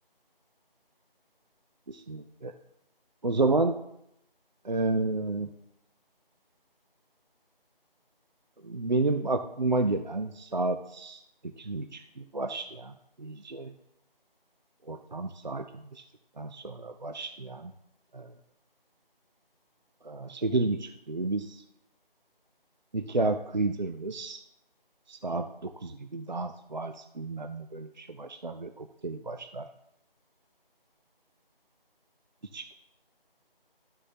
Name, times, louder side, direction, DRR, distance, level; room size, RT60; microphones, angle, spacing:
voice 1, 1.9-2.5 3.2-3.7 4.6-5.5 8.6-11.2 11.6-12.9 13.2-13.7 14.9-16.0 16.4-17.7 18.1-18.3 20.0-21.6 22.9-24.4 25.1-29.7 32.5-32.7, right 2 dB, 50° right, 7 dB, 0.5 m, -31 dB
12.0 x 6.7 x 2.7 m, 0.80 s
figure-of-eight pair, 180°, 29 cm